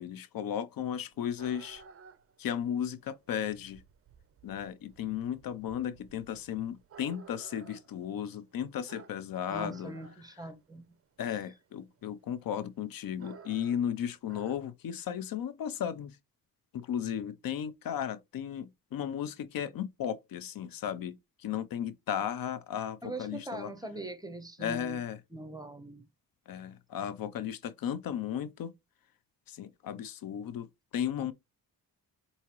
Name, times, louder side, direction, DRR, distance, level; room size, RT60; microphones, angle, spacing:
voice 1, 0.0-1.8 2.4-3.8 4.4-9.9 11.2-16.2 16.7-23.7 24.6-25.2 26.5-28.7 29.5-31.3, left 9 dB, 70° left, 0.5 m, -35 dB
sound 1, 0.8-14.6, right 6 dB, 40° right, 0.5 m, -55 dB
voice 2, 9.5-10.8 23.0-25.0 25.3-26.0, right 2 dB, 10° right, 0.8 m, -42 dB
4.7 x 2.8 x 2.9 m
cardioid pair, 110°, 36 cm